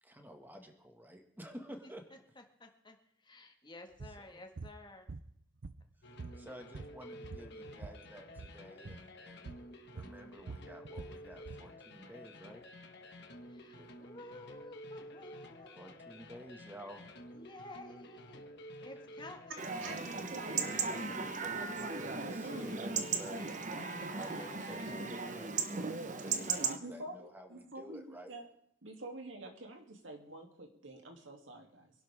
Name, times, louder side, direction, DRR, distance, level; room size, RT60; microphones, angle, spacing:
voice 1, 0.0-2.4 4.0-4.5 6.0-9.5 9.9-12.6 13.7-13.9 15.8-17.1 18.9-19.0 20.0-23.6 24.1-28.3, equal, 10° right, 4 dB, 1.9 m, -52 dB
voice 2, 2.6-3.0 3.2-5.1 13.5-15.9 17.3-18.4 18.8-19.6, left 2 dB, 25° left, 4 dB, 1.8 m, -52 dB
sound 1, 4.0-4.2 4.6-4.8 5.1-5.9 6.2-8.0 8.3-8.6 8.8-9.0 9.5-9.7 10.0-11.7, right 3 dB, 70° right, 0.7 m, -46 dB
sound 2, 6.0-25.5, equal, 60° left, 1.6 m, -51 dB
voice 3, 19.5-20.0 26.8-28.4 28.8-31.9, right 2 dB, 90° right, 3 dB, 2.8 m, -48 dB
Chatter / Livestock farm animals working animals / Chirp tweet, 19.6-26.8, right 4 dB, 40° right, 1.1 m, -37 dB
25.5 x 12.0 x 3.6 m, 0.72 s
head